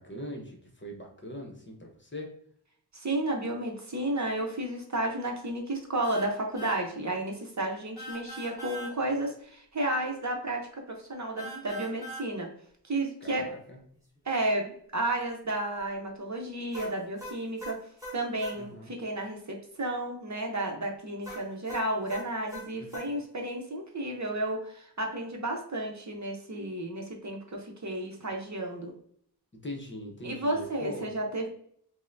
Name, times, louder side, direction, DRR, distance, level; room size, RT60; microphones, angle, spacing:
voice 1, 0.0-2.3 13.2-13.8 18.6-18.9 22.7-23.1 28.2-28.3 29.6-31.1, left 1 dB, 30° left, 1 dB, 0.9 m, -41 dB
voice 2, 2.9-12.5 12.8-13.5 14.2-17.8 18.1-28.9 30.2-31.5, right 1 dB, 45° right, 1 dB, 0.8 m, -32 dB
sound 1, 6.0-6.3 6.6-6.8 8.0-8.9 11.4-12.3 16.7-18.6 21.2-23.1, right 1 dB, 10° right, 1.4 m, -41 dB
5.3 x 2.1 x 2.6 m, 0.65 s
wide cardioid pair, 75°, 40 cm